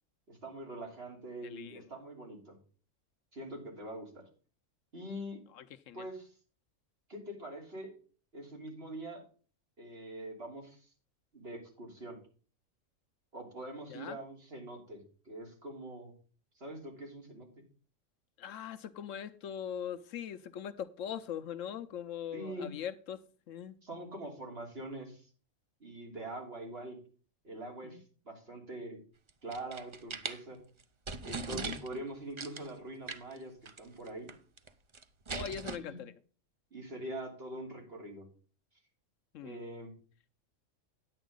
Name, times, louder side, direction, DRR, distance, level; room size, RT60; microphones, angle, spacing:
voice 1, 0.3-2.6 3.3-4.3 4.9-5.4 5.9-6.3 7.1-8.0 8.3-9.2 9.8-10.9 11.3-12.2 13.3-16.1 16.6-17.6 22.3-22.8 23.8-25.3 25.8-27.0 27.4-29.0 29.4-30.6 31.2-34.3 35.7-36.0 36.7-38.3 39.4-39.9, right 1 dB, 50° right, 3.6 m, -44 dB
voice 2, 1.4-1.8 5.5-6.1 13.8-14.2 18.4-23.2 23.5-23.8 27.8-28.0 31.5-31.8 35.3-36.1 39.3-39.6, left 9 dB, 85° left, 1.1 m, -41 dB
sound 1, 29.3-30.4 30.8-30.9 31.1-32.0 32.4-32.7 33.1-33.4 33.6-33.8 34.1-34.7 34.9-35.8, right 4 dB, 30° right, 0.6 m, -40 dB
10.0 x 8.9 x 3.8 m
omnidirectional pair, 1.3 m